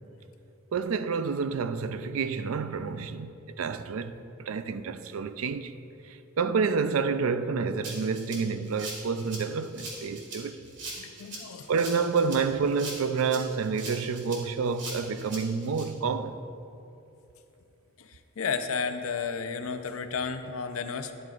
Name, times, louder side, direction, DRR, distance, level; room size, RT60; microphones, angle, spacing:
voice 1, 0.7-5.8 6.1-10.7 11.7-16.4, right 5 dB, 80° right, 0.4 m, -29 dB
Rattle (instrument), 7.8-15.8, right 2 dB, 60° right, 1.9 m, -41 dB
voice 2, 11.0-11.7 18.0-21.1, left 5 dB, 80° left, 0.5 m, -33 dB
11.5 x 11.0 x 2.4 m
head